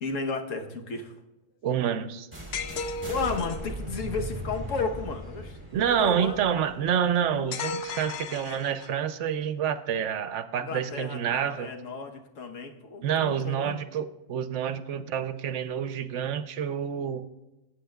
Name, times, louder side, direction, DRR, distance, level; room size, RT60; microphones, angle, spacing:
voice 1, 0.0-1.1 3.1-5.6 5.9-6.4 10.6-13.8, left 4 dB, 80° left, 4 dB, 1.4 m, -33 dB
voice 2, 1.6-2.3 5.7-11.7 13.0-17.3, right 8 dB, 75° right, 12 dB, 0.9 m, -28 dB
sound 1, 2.3-8.1, right 1 dB, 20° right, 2.3 m, -39 dB
sound 2, 2.5-3.7 7.5-9.1, left 4 dB, 65° left, 0.8 m, -35 dB
18.0 x 8.0 x 2.3 m, 1.0 s
omnidirectional pair, 1.3 m